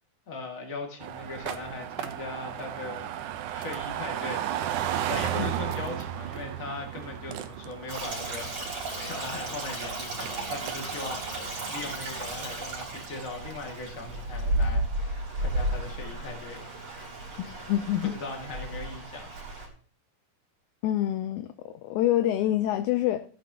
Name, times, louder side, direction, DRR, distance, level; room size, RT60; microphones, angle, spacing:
voice 1, 0.3-3.1 3.5-4.5 4.9-16.8 18.0-19.3, left 3 dB, 30° left, 1 dB, 1.9 m, -39 dB
sound 1, 1.0-14.8, right 11 dB, 75° right, 2.0 m, -36 dB
Stream, 7.9-19.7, right 1 dB, 50° right, 4.4 m, -33 dB
voice 2, 17.4-18.1 20.8-23.2, left 13 dB, 80° left, 10 dB, 1.7 m, -27 dB
14.5 x 10.5 x 2.9 m, 0.41 s
omnidirectional pair, 3.9 m